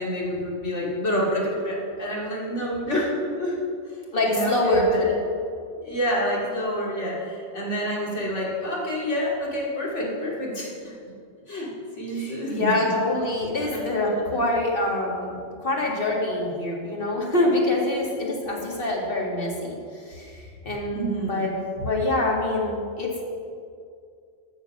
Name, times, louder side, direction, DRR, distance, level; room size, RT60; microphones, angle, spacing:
voice 1, 0.0-3.6 4.2-5.1 5.8-10.9 11.5-11.7 12.0-12.9 13.7-13.8 20.9-21.5, equal, 80° left, -4 dB, 2.9 m, -28 dB
voice 2, 4.1-5.1 12.1-15.3 15.6-19.7 20.1-20.3 20.6-23.3, left 1 dB, 50° left, -2 dB, 2.3 m, -25 dB
13.5 x 7.3 x 6.1 m, 2.4 s
omnidirectional pair, 1.2 m